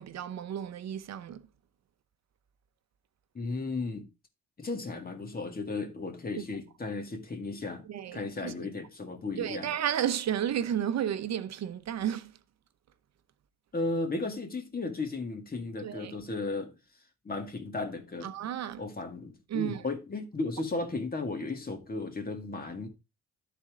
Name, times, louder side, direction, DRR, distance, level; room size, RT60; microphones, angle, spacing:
voice 1, 0.0-1.4 7.9-8.5 9.4-12.3 15.8-16.1 18.2-18.8 19.5-19.8, right 10 dB, 60° right, 0.7 m, -32 dB
voice 2, 3.3-4.1 4.6-7.9 8.1-9.7 13.7-16.7 17.2-18.3 18.8-22.9, left 3 dB, 30° left, 2.1 m, -35 dB
12.0 x 4.3 x 3.6 m
cardioid pair, 90°, 30 cm